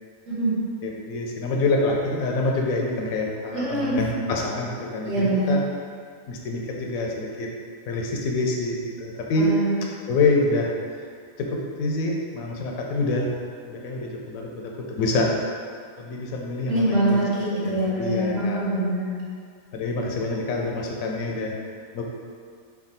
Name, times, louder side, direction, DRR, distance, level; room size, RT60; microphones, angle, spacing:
voice 1, 0.3-0.6 3.5-4.0 5.0-5.5 9.4-9.8 16.7-19.2, right 1 dB, 65° right, -8 dB, 1.3 m, -24 dB
voice 2, 0.8-5.6 6.3-7.5 7.9-9.5 10.1-10.7 11.4-13.3 13.6-15.5 16.0-17.2 17.6-18.6 19.7-21.6 21.9-22.0, left 2 dB, 80° left, -1 dB, 1.0 m, -26 dB
3.5 x 2.2 x 4.0 m, 2.2 s
omnidirectional pair, 1.5 m